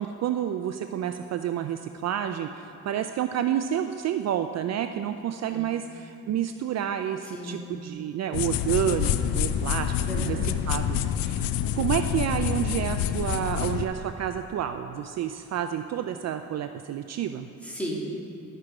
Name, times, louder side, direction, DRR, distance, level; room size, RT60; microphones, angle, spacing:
voice 1, 0.0-10.4 10.7-17.5, right 10 dB, 55° right, 8 dB, 0.4 m, -29 dB
voice 2, 7.2-7.7 10.1-10.5 11.5-11.6 17.6-18.2, right 1 dB, 5° left, -4 dB, 2.1 m, -36 dB
sound 1, 8.3-13.8, left 9 dB, 90° left, 0.5 m, -27 dB
12.0 x 6.7 x 4.9 m, 2.8 s
cardioid pair, 105°, 33 cm